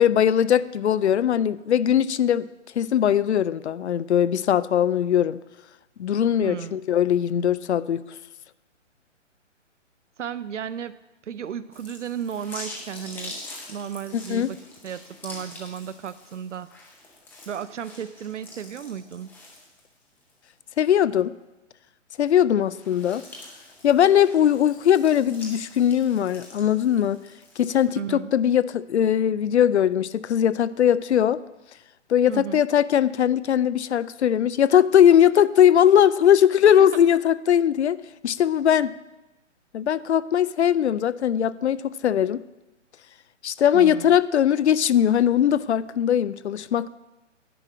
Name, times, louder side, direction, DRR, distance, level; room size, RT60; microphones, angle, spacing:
voice 1, 0.0-2.5 2.8-5.4 6.0-8.0 14.1-14.5 20.8-21.3 22.2-23.2 23.8-27.2 27.6-31.4 32.1-38.0 38.2-38.9 39.7-42.4 43.4-46.9, left 9 dB, 60° left, 18 dB, 0.5 m, -20 dB
voice 2, 6.4-6.8 10.2-11.0 11.2-13.4 13.7-16.7 17.5-19.4 28.0-28.3 32.3-32.6 36.7-36.9 43.7-44.2, right 8 dB, 70° right, 14 dB, 0.5 m, -34 dB
sound 1, 11.7-20.3 20.8-20.9 22.6-27.8, left 2 dB, 5° left, 0.7 m, -44 dB
10.0 x 4.9 x 7.5 m, 1.0 s
figure-of-eight pair, 135°, 37 cm